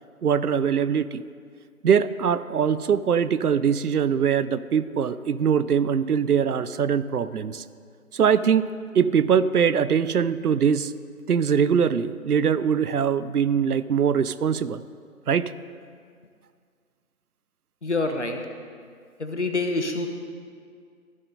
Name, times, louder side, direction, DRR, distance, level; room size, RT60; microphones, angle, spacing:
voice 1, 0.2-1.2 1.8-7.6 8.1-8.7 8.9-10.9 11.3-14.8 15.3-15.5, right 7 dB, 80° right, 15 dB, 0.5 m, -22 dB
voice 2, 17.8-18.4 19.2-20.1, left 3 dB, 50° left, 5 dB, 0.9 m, -26 dB
14.0 x 6.6 x 4.0 m, 2.1 s
figure-of-eight pair, 170°, 45 cm